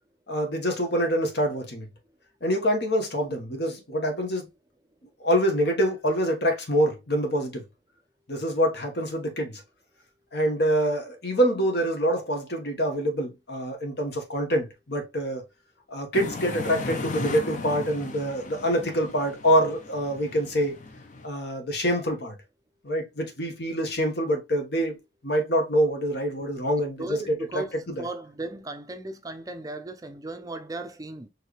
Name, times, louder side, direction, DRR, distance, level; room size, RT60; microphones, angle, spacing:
voice 1, 0.3-1.9 2.4-4.5 5.2-7.6 8.3-9.6 10.3-15.4 15.9-20.8 21.2-22.3 22.8-25.0 25.2-28.1, equal, 65° left, 1.3 m, -26 dB
sound 1, 16.1-21.3, left 3 dB, 45° left, 0.7 m, -36 dB
voice 2, 27.0-27.7 28.0-31.3, right 2 dB, 20° right, 0.5 m, -36 dB
4.6 x 3.2 x 3.1 m
head